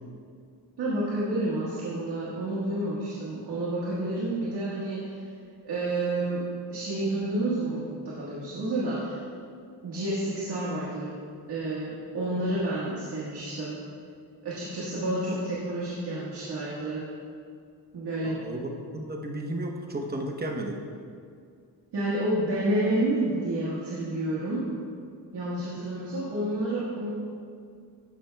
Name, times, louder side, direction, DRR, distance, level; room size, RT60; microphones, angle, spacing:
voice 1, 0.8-5.2 5.6-6.4 6.7-9.2 9.8-11.2 11.5-13.8 14.4-17.1 17.9-18.4 21.9-24.7 25.3-27.1, right 1 dB, 65° right, -8 dB, 1.6 m, -29 dB
voice 2, 18.2-20.8, right 1 dB, 25° right, 1 dB, 0.9 m, -33 dB
12.5 x 5.8 x 2.3 m, 2.2 s
cardioid pair, 75°, 42 cm